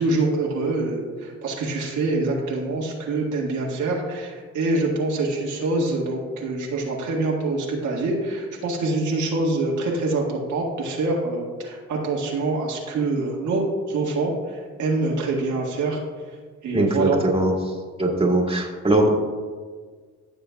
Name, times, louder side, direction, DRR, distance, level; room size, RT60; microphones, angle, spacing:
voice 1, 0.0-16.0 16.6-17.2, right 2 dB, 80° right, -2 dB, 1.7 m, -25 dB
voice 2, 16.7-17.5 18.0-19.1, right 2 dB, 20° right, -1 dB, 1.9 m, -20 dB
15.5 x 6.8 x 2.3 m, 1.5 s
cardioid pair, 90°, 30 cm